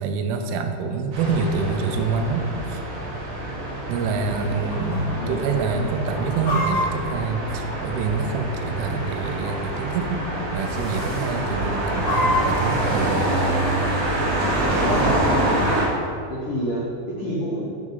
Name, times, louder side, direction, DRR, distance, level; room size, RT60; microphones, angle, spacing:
voice 1, 0.0-2.8 3.9-10.2 10.5-13.3, right 5 dB, 85° right, 6 dB, 3.2 m, -26 dB
sound 1, 1.1-15.8, right 1 dB, 50° right, 3.3 m, -26 dB
voice 2, 4.0-4.7 5.1-5.4 5.7-5.9 14.8-15.2 16.3-17.6, equal, 90° left, -5 dB, 1.7 m, -30 dB
Chicken rooster, 4.7-5.2 5.4-5.5 6.0-8.2 8.9-9.7 10.0-10.3 10.5-11.0 11.5-12.6, left 2 dB, 40° left, 1.7 m, -26 dB
11.0 x 4.7 x 5.5 m, 2.5 s
omnidirectional pair, 5.6 m